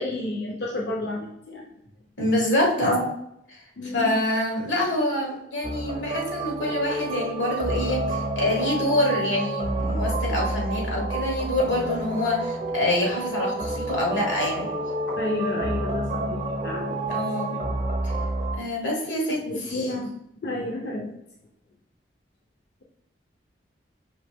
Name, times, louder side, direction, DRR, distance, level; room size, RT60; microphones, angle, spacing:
voice 1, 0.0-1.6 3.8-4.1 15.1-17.0 19.5-20.1 20.4-21.1, left 2 dB, 60° left, 0 dB, 0.5 m, -30 dB
voice 2, 2.2-3.1 3.8-14.7 17.1-17.5 18.0-18.1 18.5-19.9, left 1 dB, 85° left, -2 dB, 1.5 m, -26 dB
sound 1, 5.6-18.6, right 2 dB, 35° right, 0.5 m, -29 dB
5.2 x 2.8 x 3.4 m, 0.78 s
head